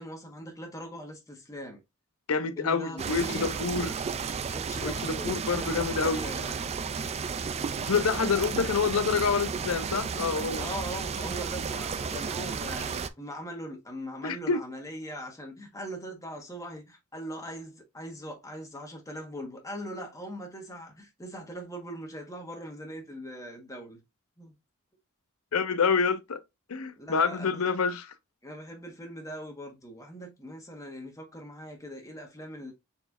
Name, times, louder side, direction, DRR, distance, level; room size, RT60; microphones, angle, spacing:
voice 1, 0.0-1.8 2.6-3.5 4.5-6.7 8.2-8.5 10.5-24.0 24.4-24.5 27.0-27.7 28.4-32.7, equal, 15° left, 1.3 m, -41 dB
voice 2, 2.3-3.9 4.8-6.2 7.8-10.7 14.2-14.6 25.5-26.4 26.7-28.1, left 5 dB, 75° left, 0.6 m, -27 dB
sound 1, 3.0-13.1, right 5 dB, 30° right, 0.3 m, -33 dB
4.4 x 3.2 x 2.3 m
head